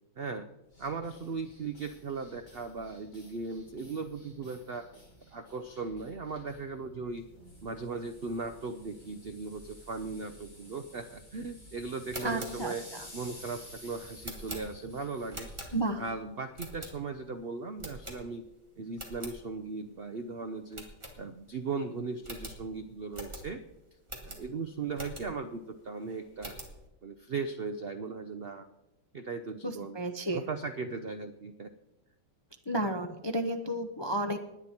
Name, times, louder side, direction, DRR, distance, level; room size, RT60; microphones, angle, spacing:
voice 1, 0.2-0.5 0.8-4.9 5.3-7.2 7.6-12.8 13.1-15.5 16.0-18.4 18.8-20.8 21.1-23.6 24.2-26.5 27.0-28.7 29.1-30.0 30.3-31.7, right 4 dB, 70° right, 9 dB, 0.5 m, -38 dB
sound 1, 0.7-16.2, left 1 dB, 55° left, 5.4 m, -53 dB
sound 2, 12.0-16.1 16.5-17.3 17.8-18.6 18.9-19.4 19.8-19.9 20.2-20.3 20.7-21.6 21.9-22.0 22.2-25.5 26.0-26.8, right 1 dB, 15° right, 2.2 m, -44 dB
voice 2, 12.2-13.0 15.7-16.0 29.6-30.4 32.7-34.4, right 1 dB, 35° left, 4 dB, 0.4 m, -32 dB
20.0 x 9.7 x 4.3 m, 0.92 s
omnidirectional pair, 1.9 m